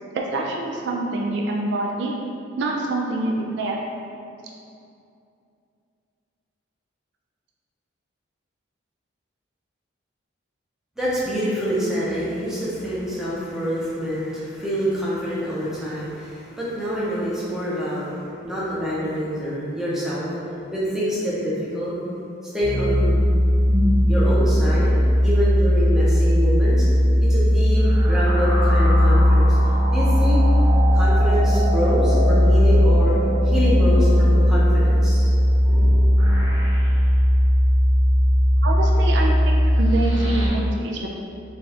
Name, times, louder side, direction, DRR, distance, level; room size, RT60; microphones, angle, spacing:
voice 1, 0.1-2.1 2.6-3.8 38.6-41.1, right 2 dB, 60° right, -1 dB, 0.3 m, -26 dB
voice 2, 11.0-20.3 20.7-22.0 22.5-23.2 24.1-24.9 25.2-26.8 27.3-29.6 29.9-30.4 30.9-33.1 33.4-35.3 35.7-35.9, equal, ahead, -9 dB, 0.7 m, -26 dB
sound 1, 22.6-40.5, equal, 75° right, 1.2 m, -17 dB
4.0 x 2.4 x 3.3 m, 2.6 s
head